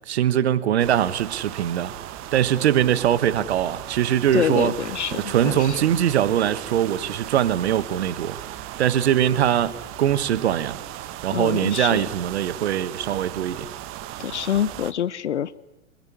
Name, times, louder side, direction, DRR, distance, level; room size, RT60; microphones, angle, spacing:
voice 1, 0.1-1.9 2.3-4.7 5.1-8.4 8.8-10.8 11.2-13.7, right 10 dB, 60° right, 1.4 m, -22 dB
sound 1, 0.8-14.9, right 13 dB, 35° right, 1.5 m, -37 dB
voice 2, 4.3-5.8 11.3-12.0 14.2-15.6, left 10 dB, 70° left, 0.9 m, -26 dB
26.0 x 22.0 x 10.0 m
figure-of-eight pair, 95°, 36 cm